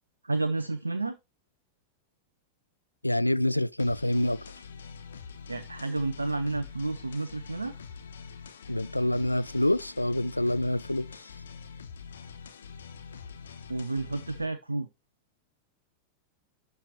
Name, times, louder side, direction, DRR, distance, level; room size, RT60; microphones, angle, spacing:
voice 1, 0.2-1.2 5.5-7.7 13.7-14.9, right 2 dB, 80° right, 0.5 m, -31 dB
voice 2, 3.0-4.4 8.7-11.3, left 1 dB, 85° left, 0.3 m, -27 dB
sound 1, 3.8-14.5, left 6 dB, 65° left, 1.0 m, -45 dB
11.5 x 4.7 x 3.0 m
figure-of-eight pair, 90°, 0 cm